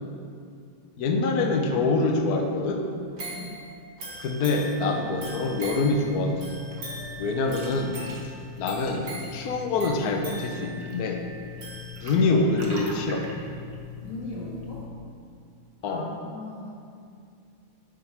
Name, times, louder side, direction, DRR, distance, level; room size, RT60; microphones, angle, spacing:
voice 1, 1.0-2.9 4.2-6.6 7.2-8.0 8.6-11.2 12.0-13.3 15.8-16.1, left 3 dB, 65° left, 3 dB, 1.0 m, -25 dB
sound 1, 3.2-12.4 12.9-13.0, right 2 dB, 80° right, 3.1 m, -41 dB
voice 2, 3.3-3.6 14.0-14.9 15.8-16.8, left 2 dB, 90° left, -7 dB, 2.7 m, -39 dB
sound 2, 4.9-14.9, left 6 dB, 45° right, 0.4 m, -41 dB
9.5 x 4.0 x 5.6 m, 2.3 s
omnidirectional pair, 2.1 m